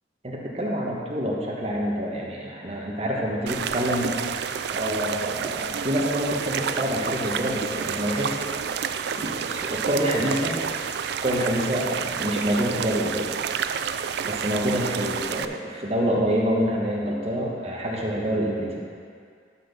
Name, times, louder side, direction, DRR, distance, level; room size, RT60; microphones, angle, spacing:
voice 1, 0.2-8.3 9.1-10.6 11.2-13.3 14.2-18.8, equal, 35° right, -3 dB, 1.3 m, -27 dB
sound 1, 3.5-15.5, right 7 dB, 60° right, 0.3 m, -29 dB
12.5 x 4.4 x 5.3 m, 2.2 s
head